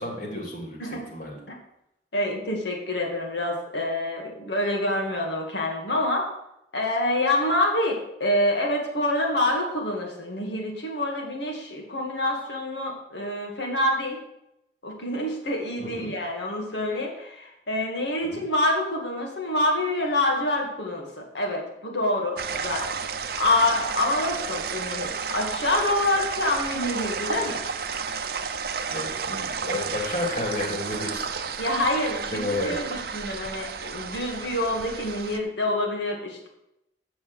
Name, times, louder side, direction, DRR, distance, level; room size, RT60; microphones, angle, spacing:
voice 1, 0.0-1.4 15.8-16.1 18.3-18.4 28.9-31.5 32.3-32.7, left 2 dB, 45° left, 0 dB, 2.5 m, -31 dB
voice 2, 2.1-6.3 6.7-14.2 14.8-22.9 23.1-27.6 31.6-36.5, left 1 dB, 70° left, 1 dB, 2.1 m, -26 dB
sound 1, 22.4-35.4, right 5 dB, 55° right, 0.7 m, -32 dB
8.3 x 6.3 x 6.3 m, 0.83 s
head